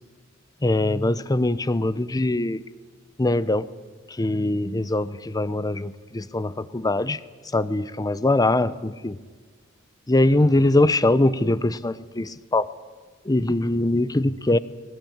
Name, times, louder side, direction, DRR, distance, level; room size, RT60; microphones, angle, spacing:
voice 1, 0.6-2.6 3.2-3.7 4.2-7.2 7.5-9.2 10.1-12.7 13.2-14.6, left 2 dB, 20° left, 16 dB, 0.6 m, -22 dB
21.0 x 17.5 x 8.7 m, 1.4 s
head